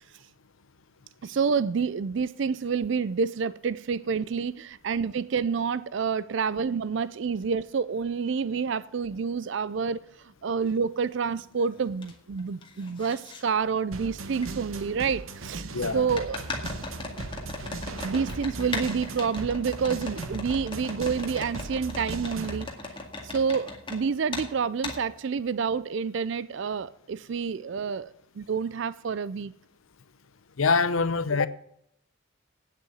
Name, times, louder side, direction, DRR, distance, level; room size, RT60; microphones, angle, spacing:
voice 1, 1.2-10.0 10.4-15.7 15.9-16.4 17.8-22.7 23.2-29.5, right 5 dB, 60° right, 0.4 m, -28 dB
sound 1, 10.7-10.8 11.3-12.1 12.4-13.4 14.4-14.5 16.1-24.0 24.3-24.5 24.8-25.0, left 2 dB, 25° left, 2.0 m, -38 dB
sound 2, 13.9-22.6, right 2 dB, 80° right, 1.1 m, -38 dB
voice 2, 15.7-16.0 30.6-31.5, left 4 dB, 75° left, 0.7 m, -24 dB
9.2 x 7.6 x 9.2 m
head